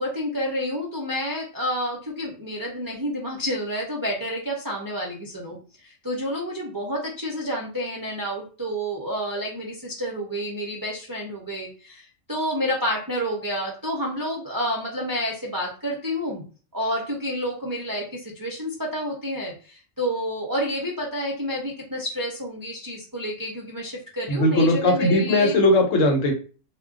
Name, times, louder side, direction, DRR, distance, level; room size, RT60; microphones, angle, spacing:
voice 1, 0.0-16.4 16.7-25.6, equal, 35° right, -3 dB, 0.3 m, -29 dB
voice 2, 24.3-26.3, left 1 dB, 70° left, 3 dB, 1.1 m, -19 dB
2.4 x 2.1 x 3.5 m, 0.37 s
omnidirectional pair, 1.4 m